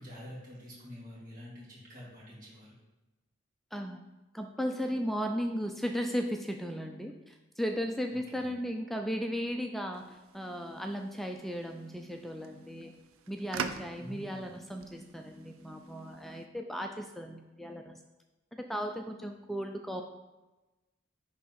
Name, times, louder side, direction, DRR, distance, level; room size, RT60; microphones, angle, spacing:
voice 1, 0.0-2.7 8.1-8.5 14.0-14.6, equal, 40° right, -7 dB, 2.1 m, -47 dB
voice 2, 3.7-4.0 4.3-12.9 13.3-18.0 18.5-20.0, equal, ahead, 3 dB, 0.3 m, -36 dB
sound 1, 9.9-16.5, right 6 dB, 80° right, 0.5 m, -45 dB
10.0 x 3.6 x 4.2 m, 1.1 s
head